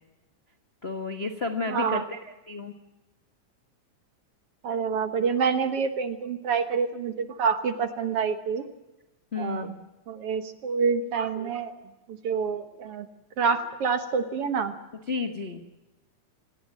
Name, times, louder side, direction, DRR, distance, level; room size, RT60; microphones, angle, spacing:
voice 1, 0.8-2.7 9.3-9.8 15.1-15.6, left 3 dB, 85° left, 5 dB, 0.5 m, -32 dB
voice 2, 1.7-2.0 4.6-8.7 9.4-9.7 10.1-11.7 12.1-13.1 13.4-14.7, right 6 dB, 55° right, 10 dB, 1.8 m, -27 dB
26.5 x 18.5 x 7.5 m, 1.0 s
omnidirectional pair, 3.8 m